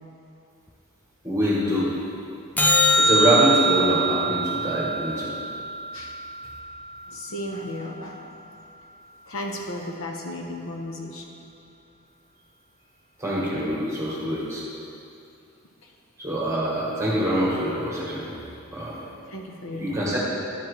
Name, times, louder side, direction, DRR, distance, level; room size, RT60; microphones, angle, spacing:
voice 1, 1.2-1.9 3.0-5.3 13.2-14.6 16.2-18.3 18.7-19.0 19.8-20.2, right 1 dB, 15° right, -6 dB, 1.3 m, -24 dB
sound 1, 2.6-7.0 13.6-13.7, right 1 dB, 10° left, 0.4 m, -23 dB
voice 2, 7.1-8.3 9.3-11.3 15.8-15.9 19.3-20.1, left 1 dB, 70° left, 1 dB, 0.9 m, -35 dB
10.0 x 7.4 x 3.2 m, 2.6 s
head